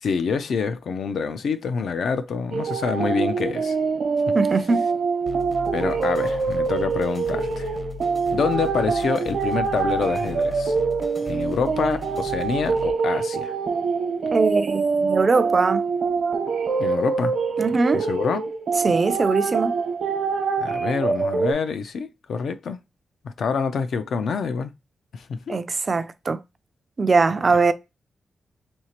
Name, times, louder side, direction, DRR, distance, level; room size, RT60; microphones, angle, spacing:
voice 1, 0.0-3.8 4.3-4.4 5.7-7.8 8.3-10.8 11.2-13.5 16.8-17.3 17.9-18.4 20.6-22.8 23.2-24.7 25.1-25.6, left 5 dB, 70° left, 0.4 m, -26 dB
sound 1, 2.5-21.5, right 5 dB, 75° right, 0.9 m, -25 dB
voice 2, 4.3-4.8 14.3-15.8 17.6-18.1 18.8-19.8 25.5-26.4 27.0-27.7, right 4 dB, 35° right, 0.3 m, -21 dB
sound 2, 5.3-12.9, left 4 dB, 30° left, 0.7 m, -37 dB
4.4 x 2.8 x 2.8 m
wide cardioid pair, 140°, 0 cm